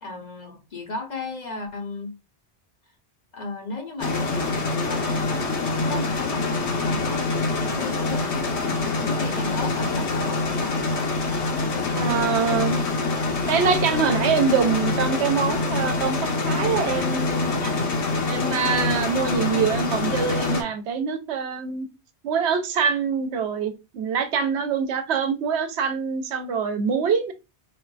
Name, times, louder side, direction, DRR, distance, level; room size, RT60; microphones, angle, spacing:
voice 1, 0.0-2.1 3.3-5.4 5.8-8.3 9.0-10.8, left 3 dB, 45° left, 0.7 m, -35 dB
sound 1, 4.0-20.6, left 3 dB, 75° left, 1.1 m, -25 dB
voice 2, 11.9-12.8 13.5-17.7 18.3-21.9 22.2-27.3, right 6 dB, 80° right, 0.9 m, -24 dB
4.2 x 2.4 x 2.2 m
omnidirectional pair, 1.1 m